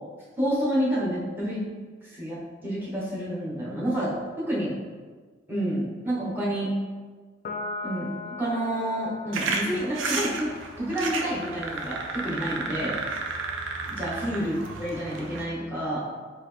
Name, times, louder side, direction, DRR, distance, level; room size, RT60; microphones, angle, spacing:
voice 1, 0.4-1.6 2.0-4.8 5.5-6.7 7.8-10.5 10.8-13.0 14.0-16.0, right 1 dB, 10° right, -8 dB, 1.0 m, -29 dB
Piano, 7.4-14.1, left 3 dB, 45° left, 0.3 m, -41 dB
sound 1, 9.3-15.4, right 3 dB, 85° right, 0.5 m, -32 dB
4.0 x 2.7 x 3.2 m, 1.5 s
head